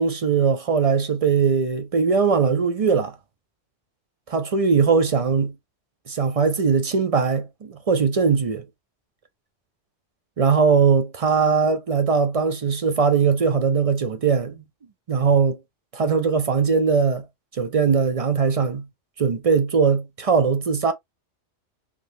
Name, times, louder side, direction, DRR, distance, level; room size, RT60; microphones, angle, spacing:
voice 1, 0.0-3.2 4.3-5.5 6.1-8.7 10.4-14.6 15.1-15.6 15.9-17.3 17.5-18.8 19.2-20.9, right 5 dB, 45° right, 0.4 m, -20 dB
3.6 x 3.1 x 2.6 m
omnidirectional pair, 1.3 m